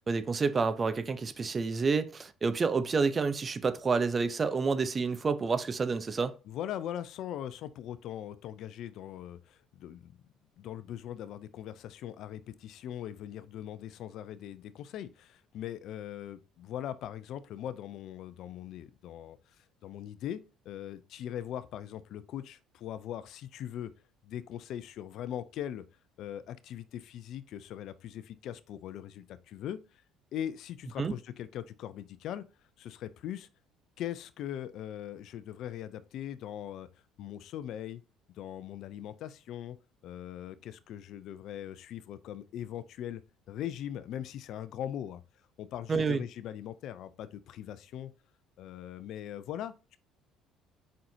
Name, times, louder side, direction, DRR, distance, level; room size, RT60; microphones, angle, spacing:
voice 1, 0.1-6.3 31.0-31.1 45.9-46.2, right 4 dB, 35° right, 0.9 m, -29 dB
voice 2, 6.5-10.2 10.6-23.9 24.2-25.8 26.2-30.0 30.3-32.4 32.8-33.5 34.0-36.9 37.2-38.0 38.3-39.8 40.0-43.2 43.5-45.2 45.6-48.1 48.6-50.0, left 11 dB, 65° left, 0.6 m, -40 dB
7.6 x 5.6 x 2.9 m
supercardioid pair, 70°, 0 cm